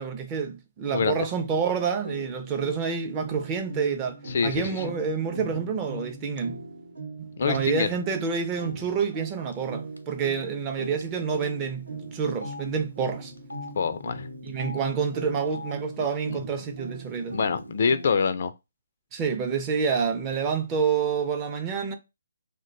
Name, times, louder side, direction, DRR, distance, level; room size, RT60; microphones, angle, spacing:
voice 1, 0.0-6.6 7.2-13.3 14.4-17.4 19.1-22.0, right 6 dB, 20° right, 0.5 m, -28 dB
voice 2, 0.9-1.3 4.3-4.8 7.4-7.9 13.8-14.3 16.0-16.1 17.3-18.5, left 5 dB, 50° left, 0.3 m, -25 dB
sound 1, 0.9-18.4, right 2 dB, 70° right, 0.9 m, -41 dB
Telephone, 9.5-9.7 10.0-10.1 11.0-11.1 11.4-11.5 12.3-12.6 13.4-13.7 14.5-14.8 15.4-15.7 16.5-16.7 16.9-17.6, left 4 dB, 90° left, 0.6 m, -41 dB
2.5 x 2.2 x 3.8 m
figure-of-eight pair, 140°, 0 cm